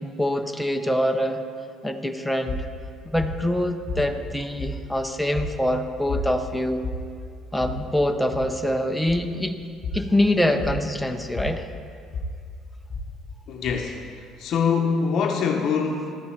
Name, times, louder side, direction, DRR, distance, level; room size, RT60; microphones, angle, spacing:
voice 1, 0.0-1.4 1.8-2.6 3.1-6.9 7.5-9.6 9.9-11.7, left 1 dB, ahead, 5 dB, 0.5 m, -24 dB
sound 1, 2.5-14.5, left 2 dB, 25° left, 1.1 m, -34 dB
voice 2, 13.5-14.0 14.4-16.2, left 6 dB, 50° left, 2 dB, 0.7 m, -24 dB
12.5 x 8.4 x 4.4 m, 2.4 s
cardioid pair, 160°, 0 cm